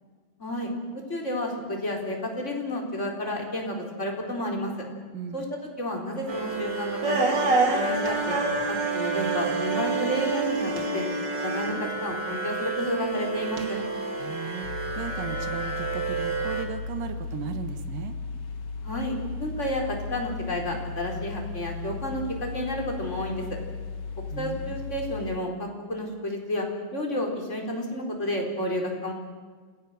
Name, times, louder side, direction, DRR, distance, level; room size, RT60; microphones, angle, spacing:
voice 1, 0.4-4.7 5.3-8.4 8.7-11.0 11.4-13.8 18.8-23.4 24.4-26.7 26.9-29.1, left 1 dB, 20° left, 1 dB, 4.2 m, -31 dB
voice 2, 5.1-5.5 14.2-18.2 24.3-24.8, right 8 dB, 80° right, 8 dB, 3.1 m, -36 dB
sound 1, 6.3-16.6, right 3 dB, 35° right, 2.6 m, -28 dB
sound 2, 14.6-25.4, left 4 dB, 75° left, 1.0 m, -36 dB
28.0 x 17.5 x 7.9 m, 1.6 s
omnidirectional pair, 3.9 m